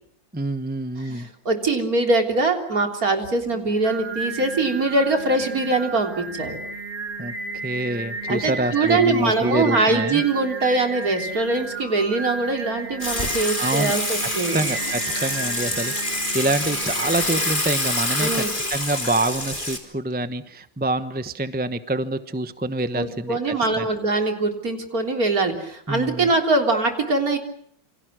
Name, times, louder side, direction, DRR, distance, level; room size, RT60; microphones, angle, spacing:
voice 1, 0.3-1.3 7.2-7.3 7.6-10.2 13.6-13.9 14.5-18.4 18.7-23.9 25.9-26.3, right 2 dB, 5° right, 11 dB, 0.7 m, -26 dB
voice 2, 1.0-6.6 8.3-14.6 18.2-18.5 22.9-27.4, right 3 dB, 50° right, 4 dB, 3.9 m, -22 dB
Singing, 3.5-17.5, right 3 dB, 70° right, 3.8 m, -33 dB
Water / Water tap faucet / Sink (filling or washing), 13.0-19.8, left 2 dB, 25° left, 3.8 m, -26 dB
28.5 x 26.5 x 6.2 m, 0.64 s
omnidirectional pair, 2.0 m